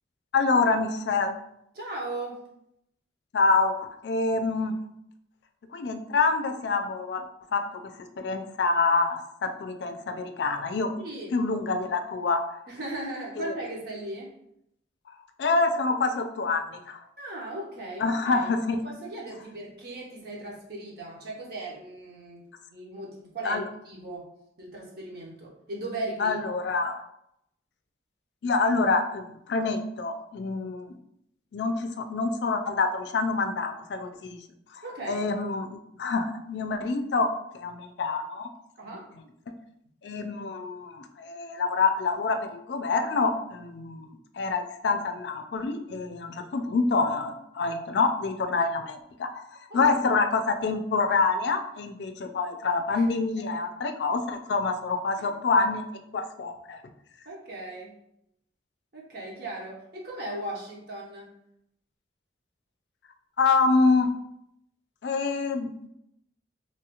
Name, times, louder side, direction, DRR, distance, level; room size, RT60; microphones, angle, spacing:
voice 1, 0.3-1.4 3.3-4.7 5.7-7.2 7.5-10.9 11.3-12.4 13.4-13.5 15.4-17.0 18.0-18.8 23.4-23.6 26.2-27.0 28.4-31.0 31.5-34.4 34.7-34.8 35.1-37.3 37.5-38.5 40.0-44.1 44.4-49.4 49.7-55.8 56.1-56.8 63.4-64.1 65.0-65.9, left 4 dB, 65° left, 7 dB, 0.4 m, -26 dB
voice 2, 1.7-2.5 11.0-11.3 12.7-14.3 17.2-18.5 18.8-22.4 22.7-24.3 24.6-26.4 34.8-35.2 38.8-39.1 49.7-49.9 52.9-53.0 57.2-57.9 58.9-61.3, right 2 dB, 60° right, -3 dB, 0.8 m, -37 dB
3.2 x 2.3 x 2.8 m, 0.77 s
head